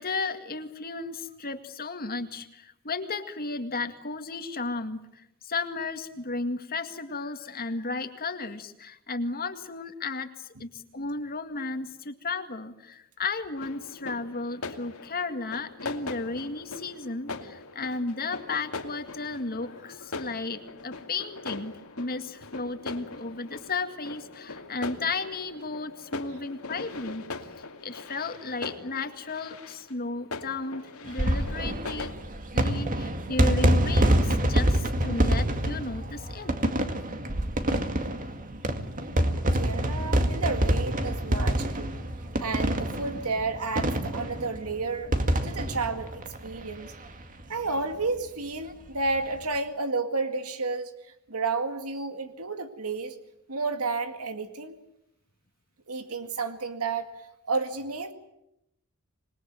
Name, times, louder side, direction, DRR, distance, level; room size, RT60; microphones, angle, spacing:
voice 1, 0.0-27.2 27.6-32.1 32.5-36.5, left 3 dB, 45° left, 7 dB, 2.1 m, -34 dB
sound 1, 13.6-32.1, left 3 dB, 75° left, 2.6 m, -41 dB
sound 2, 31.0-47.1 47.4-47.5 47.7-47.8 49.1-49.3, right 1 dB, 40° right, 2.2 m, -26 dB
voice 2, 39.5-41.9 42.4-45.1 45.4-46.9 47.5-50.9 51.3-53.2 53.5-54.8 55.9-57.1 57.5-58.1, right 3 dB, 85° right, 8 dB, 2.1 m, -31 dB
26.5 x 21.0 x 9.2 m, 0.82 s
head